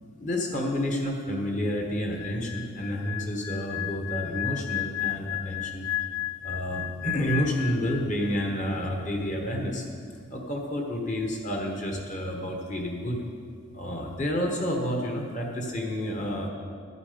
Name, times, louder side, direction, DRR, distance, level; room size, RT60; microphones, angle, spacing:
voice 1, 0.2-5.8 6.4-9.9 10.3-13.2 13.7-16.5, equal, 35° left, 1 dB, 1.2 m, -30 dB
sound 1, 2.1-8.5 8.8-9.0, left 15 dB, 85° left, 0.4 m, -34 dB
12.5 x 9.6 x 5.1 m, 2.1 s
head